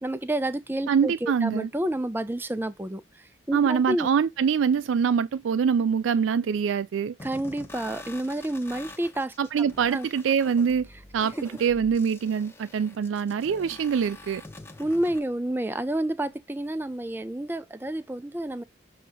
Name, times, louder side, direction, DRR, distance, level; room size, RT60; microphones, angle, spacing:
voice 1, 0.0-4.1 7.2-10.1 14.8-18.6, right 1 dB, 10° right, 0.5 m, -30 dB
voice 2, 0.9-1.7 3.5-7.1 9.4-10.9 11.1-14.4, right 7 dB, 80° right, 0.3 m, -24 dB
sound 1, 7.2-15.2, left 2 dB, 10° left, 0.9 m, -46 dB
6.8 x 2.8 x 4.9 m
head